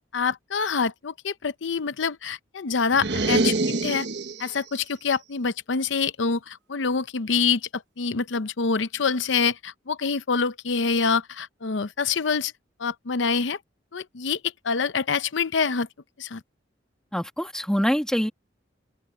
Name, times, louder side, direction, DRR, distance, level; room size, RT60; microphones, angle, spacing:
voice 1, 0.1-4.1 4.4-12.5 12.8-13.6 13.9-14.4 14.6-15.9 16.2-16.4, left 5 dB, 85° left, 0.7 m, -26 dB
sound 1, 2.9-4.6, right 2 dB, 65° right, 1.4 m, -25 dB
voice 2, 17.1-18.3, equal, 5° left, 1.5 m, -24 dB
open air
head